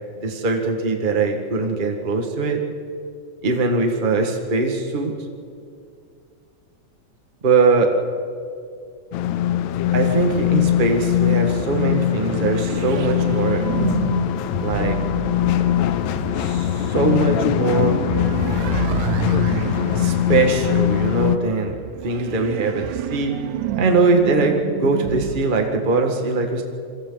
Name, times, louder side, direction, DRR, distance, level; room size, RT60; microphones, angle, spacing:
voice 1, 0.2-2.6 3.4-5.1 7.4-7.9 9.9-13.9 14.6-15.0 16.4-18.0 19.9-21.7 22.0-23.3 23.8-26.6, right 3 dB, 25° right, 3 dB, 1.3 m, -21 dB
sound 1, 9.1-21.4, left 12 dB, 75° left, 1.9 m, -21 dB
sound 2, 11.5-25.4, right 12 dB, 80° right, 2.0 m, -30 dB
27.0 x 24.5 x 4.0 m, 2.3 s
omnidirectional pair, 3.5 m